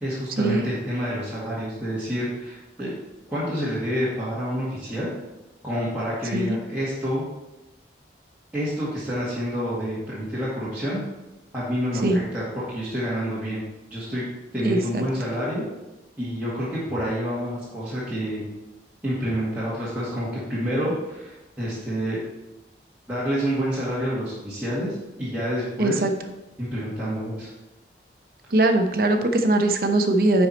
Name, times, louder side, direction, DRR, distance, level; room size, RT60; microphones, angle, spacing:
voice 1, 0.0-2.9 3.3-5.1 5.6-7.2 8.5-11.0 11.5-13.6 13.9-14.3 14.5-15.6 16.2-18.4 19.0-22.2 23.1-26.0 26.6-27.5, equal, 10° right, -12 dB, 1.9 m, -28 dB
voice 2, 14.6-15.0 25.8-26.1 28.5-30.5, right 2 dB, 50° right, 5 dB, 0.7 m, -21 dB
10.0 x 4.7 x 4.2 m, 1.0 s
head